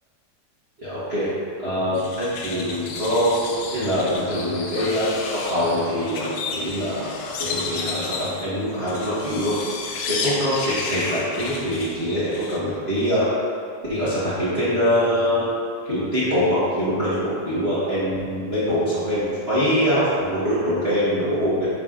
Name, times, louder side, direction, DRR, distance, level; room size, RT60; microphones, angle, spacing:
voice 1, 0.8-1.3 1.6-9.5 10.1-13.3 13.9-15.5 15.8-21.7, equal, 30° right, -12 dB, 1.2 m, -23 dB
sound 1, 1.9-12.6, left 4 dB, 85° left, 1.1 m, -32 dB
10.0 x 3.5 x 3.9 m, 2.3 s
omnidirectional pair, 3.3 m